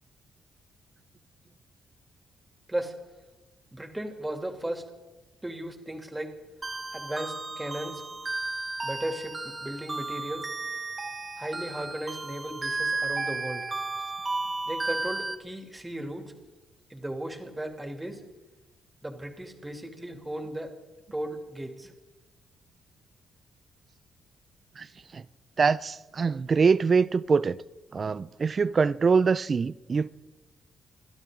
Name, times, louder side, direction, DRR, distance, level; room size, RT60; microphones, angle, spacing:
voice 1, 3.7-4.9 5.4-6.3 6.9-8.0 8.8-10.5 11.4-13.7 14.7-16.3 16.9-18.2 19.0-20.7 21.1-21.9, right 1 dB, 10° right, 3.0 m, -36 dB
sound 1, 6.6-15.3, right 3 dB, 30° right, 1.5 m, -33 dB
voice 2, 25.6-27.6 27.9-30.1, right 5 dB, 45° right, 0.5 m, -24 dB
29.0 x 12.0 x 3.9 m
supercardioid pair, 65°, 0 cm